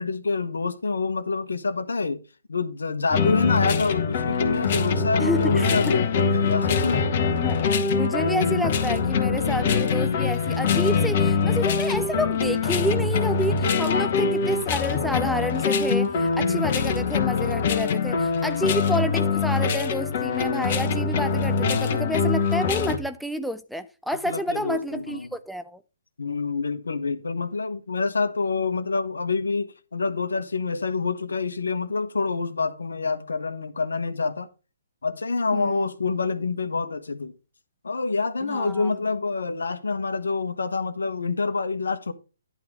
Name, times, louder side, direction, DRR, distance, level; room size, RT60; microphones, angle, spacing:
voice 1, 0.0-2.2 2.5-7.1 13.8-14.2 18.2-18.7 24.2-25.4 26.2-34.5 35.0-37.3 37.8-42.1, left 4 dB, 80° left, 1.3 m, -27 dB
sound 1, 3.1-23.0, left 5 dB, 45° left, 1.7 m, -23 dB
voice 2, 5.2-6.0 7.3-25.8 35.5-35.9 38.4-39.0, equal, ahead, 0.5 m, -30 dB
11.0 x 3.7 x 6.5 m
hypercardioid pair, 140°, 0 cm